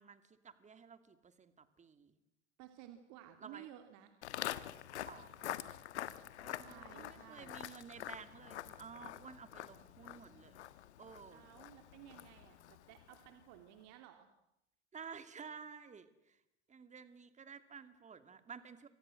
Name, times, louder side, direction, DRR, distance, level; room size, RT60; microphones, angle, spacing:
voice 1, 0.0-2.2 3.4-3.7 5.0-5.6 6.4-10.6 11.0-11.5 14.9-16.4 16.7-18.9, right 6 dB, 20° right, 11 dB, 2.7 m, -53 dB
voice 2, 2.6-4.1 6.5-7.6 11.3-14.3, right 12 dB, 50° right, 7 dB, 2.9 m, -56 dB
Walk footsteps, 4.2-13.4, left 12 dB, 70° left, 1.5 m, -46 dB
29.0 x 25.5 x 7.8 m, 0.83 s
hypercardioid pair, 90°, 35 cm